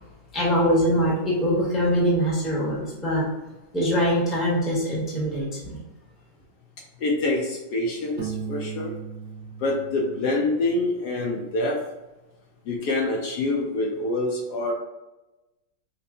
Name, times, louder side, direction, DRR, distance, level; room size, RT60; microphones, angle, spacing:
voice 1, 0.3-3.3 3.7-5.8, equal, ahead, -5 dB, 0.7 m, -23 dB
voice 2, 7.0-8.9 9.6-11.8 12.7-14.7, left 2 dB, 70° left, 0 dB, 1.1 m, -26 dB
Piano, 8.2-10.9, right 7 dB, 55° right, 0.4 m, -37 dB
5.4 x 2.2 x 2.6 m, 1.0 s
omnidirectional pair, 2.0 m